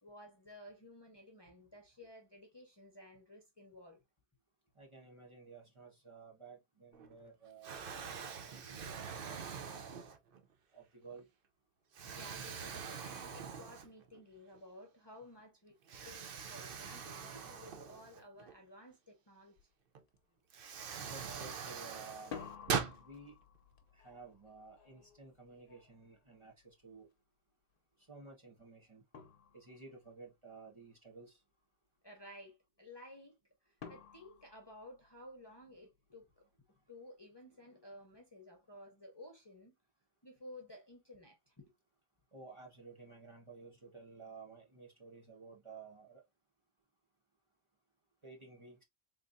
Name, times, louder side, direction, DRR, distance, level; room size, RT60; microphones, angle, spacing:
voice 1, 0.0-4.0 12.1-15.8 16.0-19.6 32.0-33.4 33.6-36.5 36.9-39.7 40.2-41.7, left 1 dB, 20° left, 0.9 m, -55 dB
voice 2, 4.8-9.9 10.7-11.3 17.3-17.4 21.1-22.4 23.0-23.3 23.9-27.1 28.1-29.0 29.5-31.4 42.3-46.2 48.2-48.8, right 4 dB, 25° right, 1.2 m, -54 dB
Explosion, 6.9-7.3 7.6-10.5 11.1-11.2 11.9-14.2 14.5-14.6 15.9-18.5 19.9-20.0 20.5-23.0, right 6 dB, 55° right, 0.8 m, -42 dB
sound 1, 19.6-19.7 20.1-20.6 22.1-27.0 28.6-28.7 29.1-30.1 33.8-35.5, left 6 dB, 50° left, 0.9 m, -53 dB
3.9 x 3.3 x 2.5 m
omnidirectional pair, 1.3 m